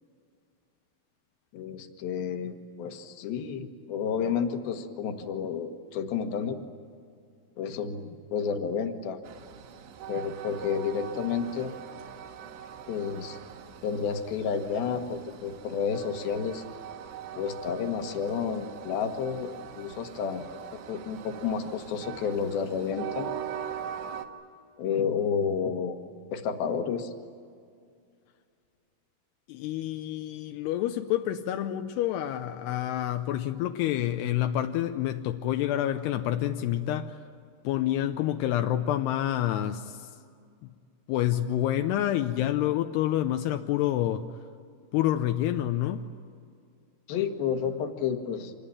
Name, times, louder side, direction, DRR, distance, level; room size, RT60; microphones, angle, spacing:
voice 1, 1.5-6.6 7.6-9.2 10.1-11.7 12.9-13.4 13.8-16.6 17.3-23.3 24.8-25.9 26.3-27.1 47.1-48.6, left 6 dB, 65° left, 6 dB, 2.8 m, -31 dB
Train, 9.2-24.3, right 8 dB, 70° right, 3.3 m, -42 dB
voice 2, 29.5-37.2 37.6-40.1 40.6-40.7 41.1-44.4 44.9-46.0, left 12 dB, 80° left, 6 dB, 2.4 m, -28 dB
26.5 x 21.5 x 8.8 m, 2.3 s
omnidirectional pair, 5.6 m